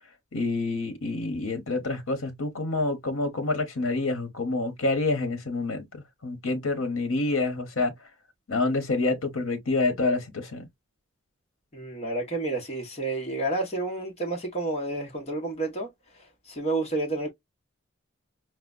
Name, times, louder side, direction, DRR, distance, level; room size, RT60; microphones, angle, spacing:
voice 1, 0.3-7.9 8.5-10.7, left 3 dB, 75° left, 0.9 m, -27 dB
voice 2, 11.7-17.3, right 2 dB, 30° left, 1.0 m, -30 dB
4.8 x 2.1 x 2.3 m
head